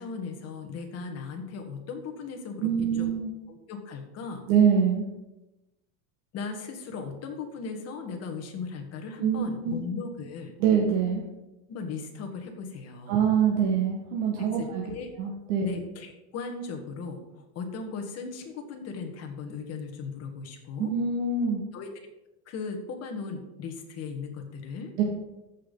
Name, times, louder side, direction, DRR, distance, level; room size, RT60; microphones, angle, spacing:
voice 1, 0.0-3.1 3.5-4.4 6.3-10.5 11.7-13.2 14.4-15.1 15.6-20.9 21.7-21.9 22.5-24.9, left 4 dB, 35° left, 4 dB, 1.5 m, -37 dB
voice 2, 2.6-3.3 4.5-5.0 9.2-9.8 10.6-11.2 13.1-14.8 15.2-15.7 20.8-21.6 25.0-25.1, right 7 dB, 85° right, -1 dB, 1.6 m, -24 dB
14.0 x 5.5 x 3.9 m, 0.97 s
cardioid pair, 160°, 44 cm